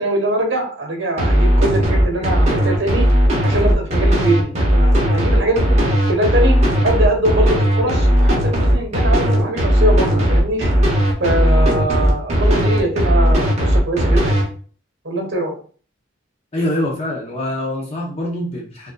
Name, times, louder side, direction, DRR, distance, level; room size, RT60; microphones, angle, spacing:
voice 1, 0.0-3.1 3.4-5.8 6.1-6.6 6.8-10.7 11.2-14.4 15.0-15.6, right 1 dB, 60° right, 2 dB, 1.2 m, -22 dB
sound 1, 1.2-14.4, equal, 35° right, 1.0 m, -16 dB
voice 2, 16.5-18.9, left 1 dB, 30° left, -4 dB, 0.8 m, -24 dB
5.0 x 2.6 x 2.3 m, 0.41 s
head